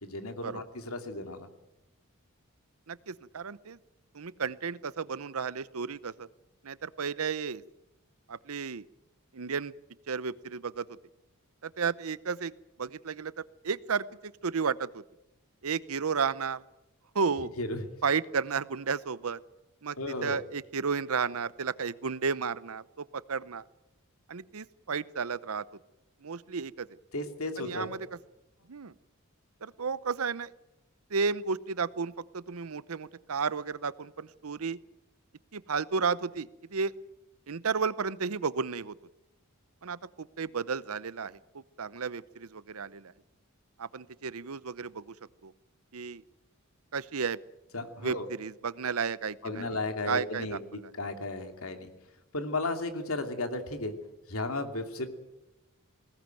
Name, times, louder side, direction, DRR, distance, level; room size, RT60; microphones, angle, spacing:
voice 1, 0.0-1.5 17.6-17.9 20.0-20.4 27.1-27.9 47.7-48.3 49.4-50.6 51.0-51.9 52.3-53.9 54.3-55.1, left 2 dB, 80° left, 6 dB, 2.7 m, -34 dB
voice 2, 2.9-3.8 4.1-6.3 6.6-7.6 8.3-8.8 9.3-9.7 10.1-11.0 11.6-12.5 12.8-15.0 15.6-16.6 17.1-17.5 18.0-19.4 19.8-20.0 20.2-23.6 24.3-25.6 26.2-27.0 27.6-28.0 28.7-28.9 29.6-30.5 31.1-34.8 35.5-36.9 37.5-38.9 39.8-43.1 43.8-45.1 45.4-45.5 45.9-46.2 46.9-47.4 48.0-49.6 50.1-50.6, right 5 dB, 80° right, 18 dB, 0.8 m, -33 dB
20.5 x 17.5 x 9.2 m, 0.94 s
head